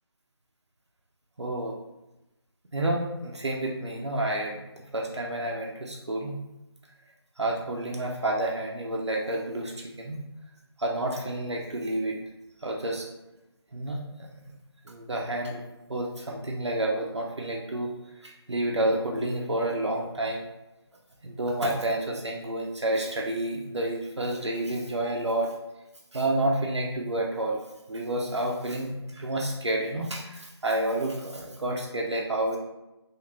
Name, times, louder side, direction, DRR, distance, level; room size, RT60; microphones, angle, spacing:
voice 1, 1.4-1.7 2.7-4.6 4.9-6.4 7.4-10.2 10.8-12.1 12.6-13.1 13.7-14.0 14.9-15.6 15.9-17.9 18.2-20.4 21.2-25.5 26.1-27.6 27.9-32.6, right 1 dB, 80° right, -1 dB, 0.5 m, -29 dB
2.8 x 2.5 x 3.0 m, 0.97 s
figure-of-eight pair, 160°, 14 cm